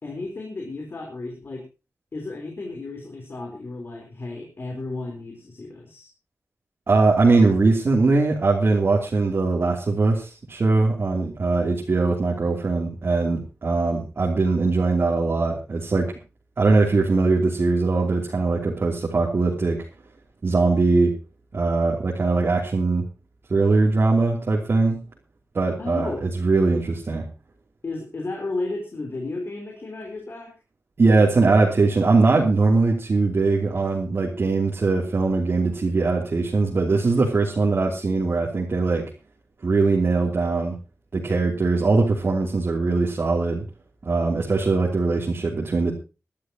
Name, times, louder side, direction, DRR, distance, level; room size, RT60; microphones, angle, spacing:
voice 1, 0.0-1.6 2.1-6.1 25.8-26.2 27.8-30.5, left 2 dB, 50° left, 1 dB, 4.1 m, -33 dB
voice 2, 6.9-16.1 16.6-19.8 20.4-21.1 21.5-23.1 23.5-25.0 25.5-27.3 31.0-39.0 39.6-40.8 41.1-43.6 44.0-45.9, right 3 dB, 50° right, -2 dB, 3.1 m, -21 dB
22.0 x 12.5 x 3.0 m, 0.31 s
wide cardioid pair, 145°, 5 cm